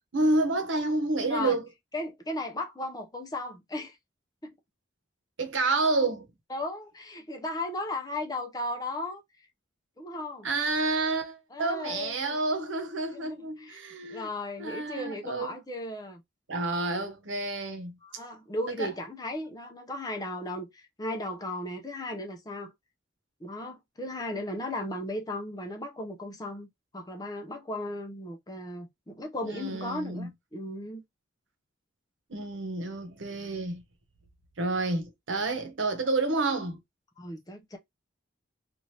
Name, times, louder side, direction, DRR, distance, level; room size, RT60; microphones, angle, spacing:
voice 1, 0.1-1.6 5.4-6.3 10.4-14.3 14.6-15.6 16.5-18.0 18.8-18.9 29.5-30.3 32.3-33.8 34.6-36.8, right 2 dB, 80° right, 0.9 m, -29 dB
voice 2, 1.9-4.0 4.4-4.5 6.5-9.2 10.0-10.5 11.5-12.4 13.1-13.8 14.1-16.2 18.0-22.7 23.4-31.0 37.2-37.8, left 1 dB, 20° left, 0.5 m, -36 dB
2.8 x 2.5 x 3.2 m
head